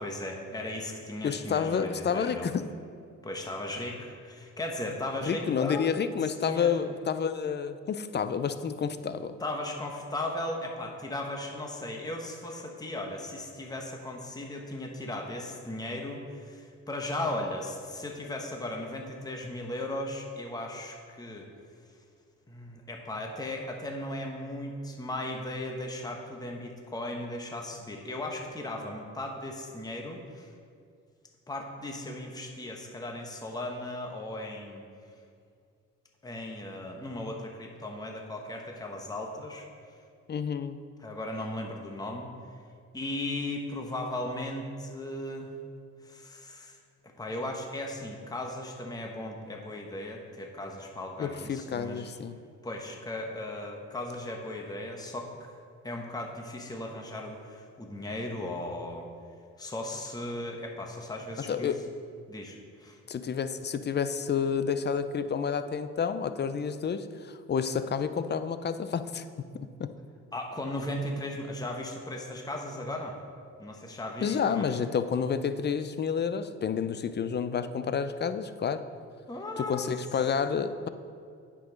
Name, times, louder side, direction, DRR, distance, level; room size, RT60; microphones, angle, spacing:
voice 1, 0.0-2.5 3.2-5.9 6.2-6.7 9.4-21.5 22.5-30.5 31.5-34.8 36.2-39.7 41.0-42.3 42.9-45.5 46.0-46.8 47.2-52.1 52.6-55.3 55.8-59.1 59.6-61.7 62.3-63.0 70.3-73.2 73.6-74.7 79.3-79.9, left 1 dB, 15° left, 1 dB, 1.1 m, -37 dB
voice 2, 1.2-2.7 5.2-9.4 40.3-40.8 51.2-52.4 61.5-61.8 63.1-69.2 69.8-69.9 74.2-78.8 79.6-80.9, left 6 dB, 35° left, 11 dB, 0.5 m, -29 dB
8.3 x 6.2 x 5.1 m, 2.3 s
cardioid pair, 90°, 30 cm